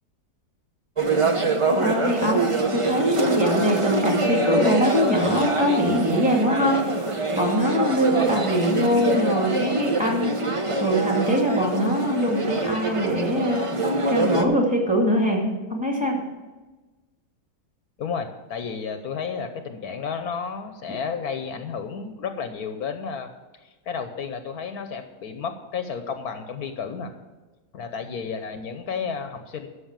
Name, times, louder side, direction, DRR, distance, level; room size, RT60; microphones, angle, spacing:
sound 1, 1.0-14.4, right 2 dB, 25° right, 0.7 m, -24 dB
voice 1, 1.8-6.8 7.3-10.3 10.8-13.6 14.1-15.4 15.7-16.2, equal, 5° right, 0 dB, 2.2 m, -23 dB
voice 2, 18.0-23.3 23.6-27.1 27.7-29.7, left 6 dB, 70° left, 7 dB, 1.3 m, -32 dB
13.0 x 6.1 x 7.4 m, 1.2 s
omnidirectional pair, 1.7 m